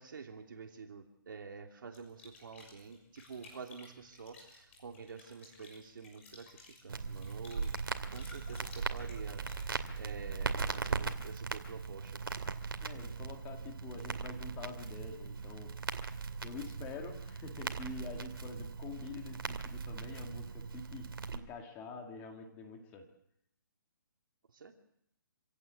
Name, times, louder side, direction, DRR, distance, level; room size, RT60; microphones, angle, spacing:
voice 1, 0.0-7.7 8.1-12.2 16.6-16.7 24.5-24.7, right 5 dB, 65° right, 3 dB, 2.8 m, -48 dB
sound 1, 1.9-9.8, left 3 dB, 35° left, 6.6 m, -57 dB
Crackle, 6.9-21.4, right 5 dB, 85° right, 2.5 m, -39 dB
voice 2, 12.8-15.7 16.4-23.1, left 4 dB, 15° left, 4 dB, 2.1 m, -46 dB
26.5 x 17.0 x 8.3 m, 0.75 s
hypercardioid pair, 170°, 12 cm